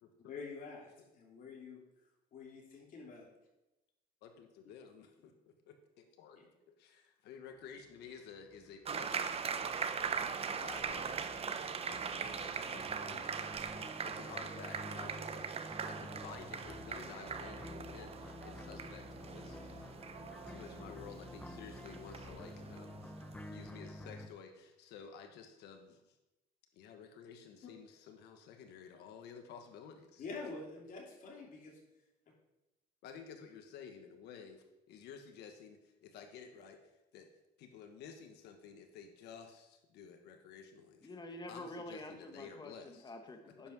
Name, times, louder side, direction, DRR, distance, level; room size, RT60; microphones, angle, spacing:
voice 1, 0.3-1.8 2.3-3.3 6.4-6.5 13.1-13.3 30.2-31.8, left 4 dB, 55° left, -2 dB, 3.3 m, -47 dB
voice 2, 4.2-6.4 6.7-9.4 9.7-23.1 23.4-26.2 26.7-30.2 33.0-36.8 37.1-37.3 37.6-41.1 41.5-43.1, left 7 dB, 80° left, 5 dB, 1.2 m, -53 dB
sound 1, 7.9-24.3, left 2 dB, 10° left, 0.6 m, -51 dB
sound 2, 8.8-23.8, right 6 dB, 35° right, 0.8 m, -41 dB
voice 3, 41.0-43.7, left 1 dB, 25° left, 5 dB, 1.6 m, -47 dB
10.0 x 5.8 x 6.2 m, 0.97 s
cardioid pair, 110°, 17 cm